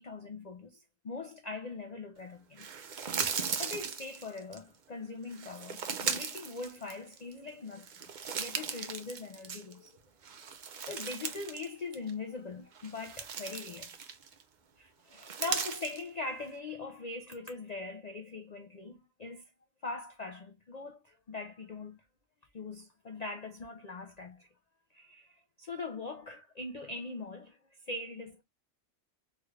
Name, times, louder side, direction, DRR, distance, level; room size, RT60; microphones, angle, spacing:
voice 1, 0.0-2.7 3.6-8.0 8.4-9.9 10.8-13.9 14.8-19.4 19.8-22.0 22.5-24.5 24.9-27.6 27.8-28.4, left 3 dB, 75° left, 0.3 m, -41 dB
sound 1, 2.6-4.6 5.3-7.3 7.7-9.9 10.2-11.7 11.9-12.1 12.7-14.4 15.1-16.0, right 6 dB, 65° right, 0.4 m, -37 dB
3.5 x 2.4 x 3.1 m
omnidirectional pair, 1.5 m